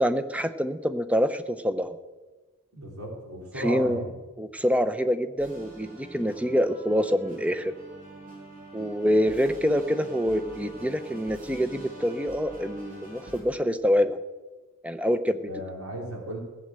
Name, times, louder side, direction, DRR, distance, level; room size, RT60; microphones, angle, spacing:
voice 1, 0.0-2.0 3.6-4.0 4.4-7.7 8.7-14.2 14.8-15.4, equal, 5° right, 11 dB, 0.6 m, -26 dB
voice 2, 2.7-4.1 15.4-16.4, right 1 dB, 75° right, 0 dB, 3.4 m, -35 dB
sound 1, 5.4-13.4, right 2 dB, 40° right, 5.8 m, -45 dB
16.0 x 7.6 x 7.5 m, 1.2 s
head